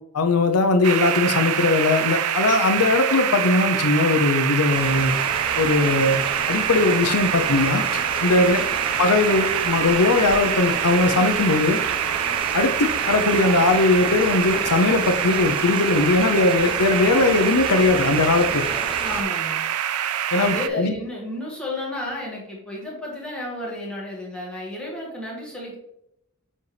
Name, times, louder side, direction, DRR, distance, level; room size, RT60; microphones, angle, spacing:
voice 1, 0.1-5.1 5.6-6.2 6.5-8.6 9.0-11.8 12.5-18.6 20.3-20.9, left 3 dB, 85° left, 6 dB, 0.7 m, -20 dB
sound 1, 0.8-20.7, right 10 dB, 70° right, 0.4 m, -25 dB
sound 2, 4.7-19.2, right 2 dB, 25° right, 0.9 m, -32 dB
voice 2, 8.3-8.7 19.0-19.7 20.3-25.8, left 1 dB, 5° left, -4 dB, 1.8 m, -32 dB
7.3 x 4.1 x 3.3 m, 0.80 s
head